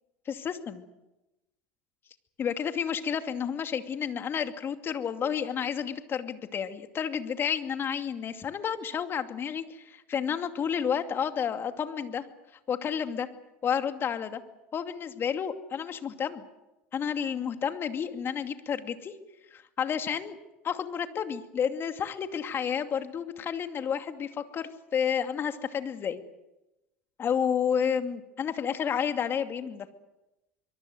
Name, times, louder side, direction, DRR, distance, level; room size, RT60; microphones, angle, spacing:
voice 1, 0.3-0.8 2.4-12.2 12.7-13.3 13.6-14.4 14.7-16.4 16.9-19.1 19.5-20.4 20.6-26.2 27.2-29.9, left 7 dB, 35° left, 7 dB, 2.5 m, -31 dB
24.5 x 23.0 x 8.0 m, 0.98 s
hypercardioid pair, 90°, 6 cm